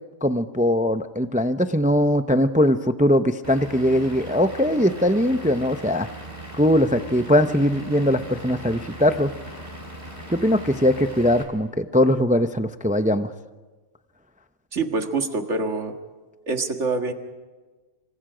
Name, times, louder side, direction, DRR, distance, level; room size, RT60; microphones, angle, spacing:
voice 1, 0.2-6.1 6.6-9.3 10.3-13.3, equal, 10° right, 9 dB, 0.5 m, -21 dB
Vehicle / Engine, 3.4-11.4, right 1 dB, 35° right, 4.4 m, -39 dB
voice 2, 14.7-15.9 16.5-17.1, right 3 dB, 70° right, 5 dB, 2.1 m, -25 dB
27.5 x 25.5 x 5.0 m, 1.3 s
omnidirectional pair, 1.3 m